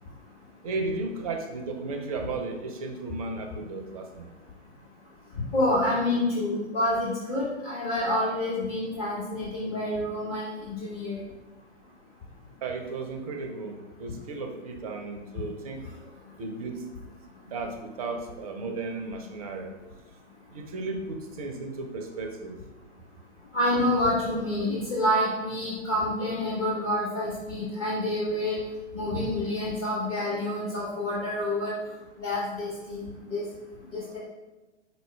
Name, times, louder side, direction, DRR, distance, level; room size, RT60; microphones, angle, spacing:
voice 1, 0.6-4.3 12.6-15.8 16.4-16.8 17.4-19.7 20.5-22.6, right 3 dB, 30° right, 4 dB, 0.5 m, -34 dB
voice 2, 5.5-11.2 23.5-28.6 28.9-31.7 32.2-33.0 33.3-33.4 33.9-34.2, left 1 dB, 30° left, -8 dB, 0.9 m, -28 dB
4.6 x 3.9 x 2.2 m, 1.1 s
figure-of-eight pair, 115°, 37 cm